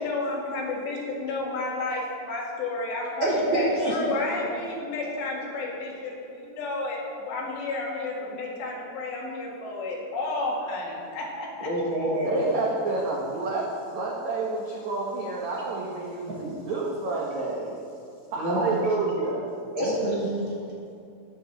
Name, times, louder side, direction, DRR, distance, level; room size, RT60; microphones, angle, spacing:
voice 1, 0.0-3.3 3.5-11.7, left 2 dB, 75° left, -3 dB, 4.0 m, -31 dB
voice 2, 3.2-4.0 11.6-12.4 18.3-18.6 19.7-20.5, right 1 dB, 30° right, -8 dB, 3.3 m, -26 dB
voice 3, 12.1-17.8 18.3-19.5, right 3 dB, 80° right, -3 dB, 1.6 m, -29 dB
13.0 x 10.5 x 4.0 m, 2.5 s
omnidirectional pair, 5.0 m